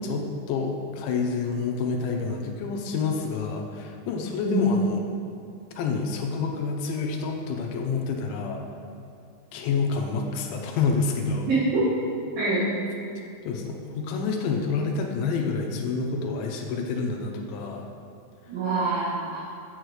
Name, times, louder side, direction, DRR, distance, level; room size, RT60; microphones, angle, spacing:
voice 1, 0.0-5.0 5.8-8.6 9.5-11.5 13.4-17.8, left 4 dB, 80° left, 2 dB, 3.3 m, -28 dB
voice 2, 11.5-11.8 12.4-12.7 18.5-19.4, right 2 dB, 55° right, -13 dB, 4.7 m, -25 dB
8.1 x 6.5 x 8.0 m, 2.4 s
omnidirectional pair, 5.3 m